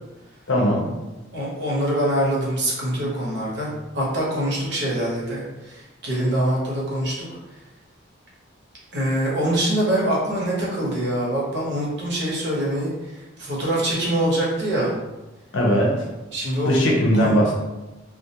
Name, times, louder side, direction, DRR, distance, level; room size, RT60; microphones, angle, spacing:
voice 1, 0.5-0.9 15.5-16.1 16.7-17.5, equal, 70° left, -2 dB, 0.6 m, -19 dB
voice 2, 1.3-3.7 3.9-7.1 8.9-12.9 13.4-14.9 16.3-16.7 17.1-17.5, right 1 dB, 60° right, -5 dB, 0.8 m, -24 dB
2.3 x 2.1 x 2.7 m, 1.0 s
head